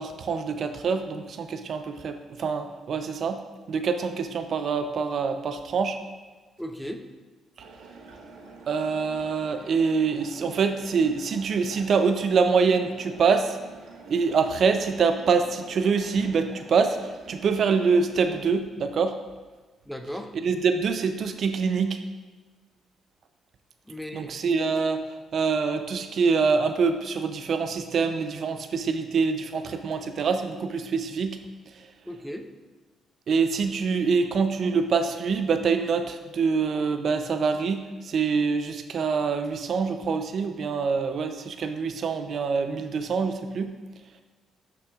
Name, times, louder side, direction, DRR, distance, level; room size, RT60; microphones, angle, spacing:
voice 1, 0.0-3.4 3.7-6.0 8.7-13.6 14.1-19.2 20.4-22.0 24.1-31.4 31.7-31.9 33.3-43.8, right 5 dB, 60° right, 8 dB, 0.4 m, -25 dB
voice 2, 6.6-7.0 19.9-20.3 23.9-24.3 32.1-32.5, equal, 5° left, 6 dB, 0.6 m, -36 dB
sound 1, 7.6-18.4, right 3 dB, 85° right, 1.1 m, -47 dB
9.5 x 5.8 x 2.4 m, 1.3 s
cardioid pair, 90°, 0 cm